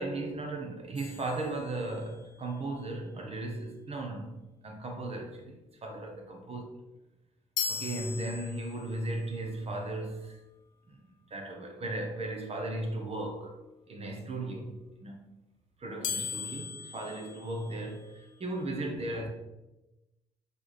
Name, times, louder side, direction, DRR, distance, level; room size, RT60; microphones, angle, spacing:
voice 1, 0.0-4.4 4.6-6.6 7.7-10.4 10.9-13.6 13.9-15.2 15.8-19.3, right 2 dB, 40° right, 1.2 m, -36 dB
sound 1, 1.0-2.3 7.6-9.0 16.0-18.2, left 7 dB, 65° left, 0.6 m, -38 dB
7.2 x 3.4 x 4.3 m
hypercardioid pair, 50°, 15 cm